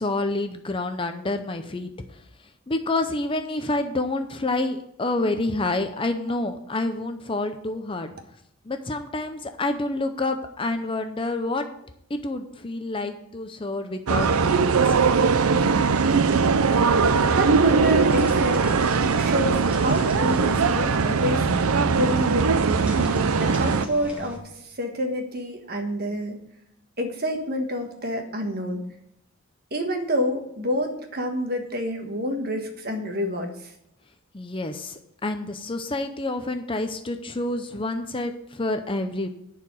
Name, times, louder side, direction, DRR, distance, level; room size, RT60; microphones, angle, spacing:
voice 1, 0.0-1.9 2.7-8.1 8.6-11.7 12.1-15.0 34.3-39.3, left 2 dB, 25° left, 7 dB, 0.6 m, -28 dB
sound 1, 14.1-23.9, right 5 dB, 75° right, 0.6 m, -20 dB
voice 2, 16.2-16.7 17.3-18.7 19.1-26.4 27.0-28.8 29.7-33.7, equal, 45° right, 4 dB, 1.5 m, -28 dB
sound 2, 18.0-24.4, equal, 5° right, 1.6 m, -39 dB
11.0 x 4.7 x 7.7 m, 0.78 s
head